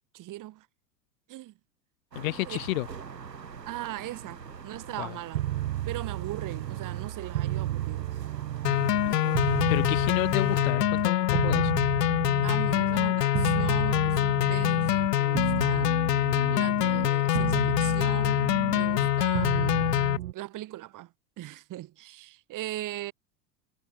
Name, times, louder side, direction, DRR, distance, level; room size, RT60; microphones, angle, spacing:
voice 1, 0.1-0.7 1.3-1.5 2.4-2.6 3.7-5.4 5.9-8.2 9.1-9.6 12.4-16.0 16.5-20.0 20.3-23.1, right 15 dB, 40° right, 3.7 m, -39 dB
voice 2, 2.1-2.9 5.0-5.1 9.7-11.7, left 22 dB, 55° left, 1.0 m, -31 dB
sound 1, 2.1-10.6, right 6 dB, 85° right, 1.7 m, -44 dB
sound 2, 5.3-9.1 9.3-15.1 15.3-17.1 17.3-20.3, right 14 dB, 70° right, 0.8 m, -32 dB
sound 3, 8.6-20.2, left 13 dB, 75° left, 0.7 m, -25 dB
figure-of-eight pair, 80°, 48 cm